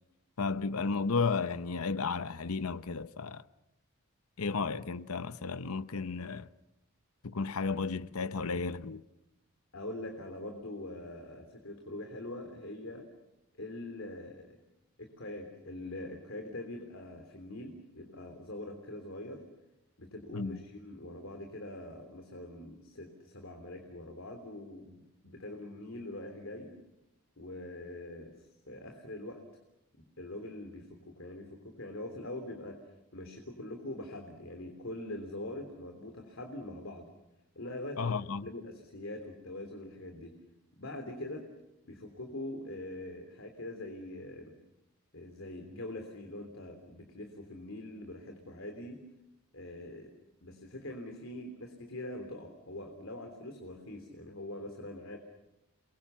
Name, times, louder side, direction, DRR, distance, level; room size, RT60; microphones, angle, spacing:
voice 1, 0.4-3.4 4.4-6.5 7.2-9.0 20.3-20.6 38.0-38.5, left 4 dB, 80° left, 0.8 m, -33 dB
voice 2, 9.7-13.0 13.6-14.6 15.0-19.4 20.0-26.7 27.4-29.4 29.9-32.8 33.1-37.1 37.5-40.3 40.8-41.4 41.8-44.5 45.1-49.0 49.5-50.1 50.4-55.2, left 1 dB, 60° left, 3.3 m, -43 dB
29.0 x 23.0 x 7.1 m
head